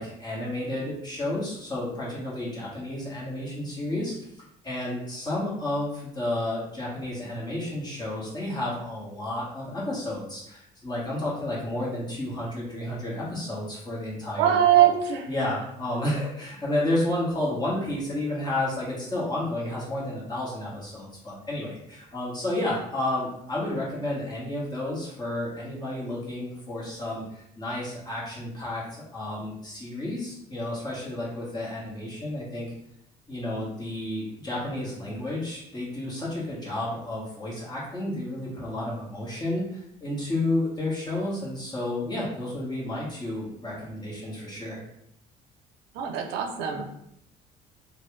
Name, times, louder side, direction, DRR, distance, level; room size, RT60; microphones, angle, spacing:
voice 1, 0.0-4.3 4.6-14.9 15.3-32.7 33.3-44.8, left 1 dB, 25° left, -6 dB, 1.4 m, -31 dB
voice 2, 14.4-15.3 45.9-46.8, right 10 dB, 90° right, 3 dB, 0.5 m, -22 dB
3.1 x 2.3 x 3.2 m, 0.76 s
cardioid pair, 110°, 17 cm